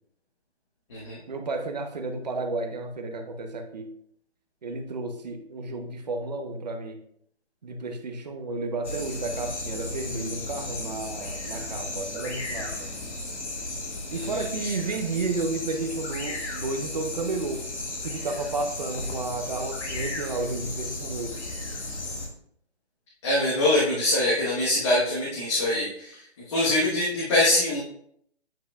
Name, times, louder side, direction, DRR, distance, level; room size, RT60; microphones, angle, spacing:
voice 1, 1.3-3.9 4.6-7.0 7.6-12.9 14.1-17.6 18.0-21.4, right 3 dB, 40° right, 5 dB, 0.8 m, -32 dB
sound 1, 8.8-22.3, left 2 dB, 85° left, 1.9 m, -35 dB
voice 2, 14.1-14.7 23.2-26.1 26.5-27.8, left 1 dB, 25° left, -6 dB, 1.2 m, -24 dB
8.9 x 5.5 x 2.3 m, 0.69 s
hypercardioid pair, 170°, 33 cm